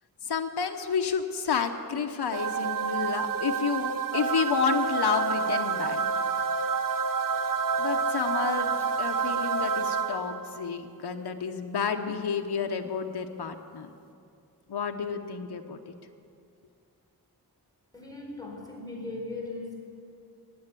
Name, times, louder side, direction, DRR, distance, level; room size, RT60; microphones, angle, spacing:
voice 1, 0.2-6.0 7.8-13.9 14.7-15.9, left 6 dB, 85° left, 5 dB, 0.9 m, -30 dB
sound 1, 2.3-10.6, right 5 dB, 55° right, 0.7 m, -28 dB
voice 2, 17.9-19.8, left 2 dB, 10° left, -3 dB, 4.5 m, -38 dB
20.0 x 7.8 x 8.2 m, 2.5 s
wide cardioid pair, 85°, 38 cm